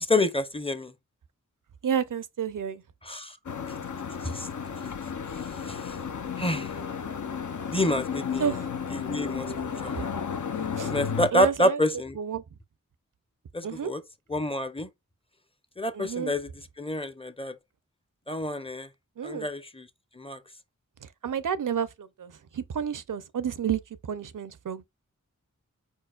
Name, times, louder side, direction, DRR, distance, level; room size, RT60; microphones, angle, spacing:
voice 1, 0.1-0.9 3.1-3.4 4.2-4.5 5.7-6.0 6.4-6.7 7.7-8.4 8.9-10.1 10.8-12.2 13.5-14.0 14.3-14.9 15.8-16.5 16.8-17.5 18.3-18.9 19.2-19.9 20.2-20.4, left 1 dB, 15° left, 0.6 m, -28 dB
voice 2, 1.8-2.8 8.4-8.7 10.8-10.9 11.3-11.8 12.1-12.4 13.6-13.9 15.9-16.3 19.2-19.5 21.0-24.9, right 7 dB, 80° right, 0.5 m, -30 dB
sound 1, 3.5-11.3, left 6 dB, 65° left, 0.6 m, -33 dB
4.8 x 4.5 x 2.3 m
wide cardioid pair, 65°, 32 cm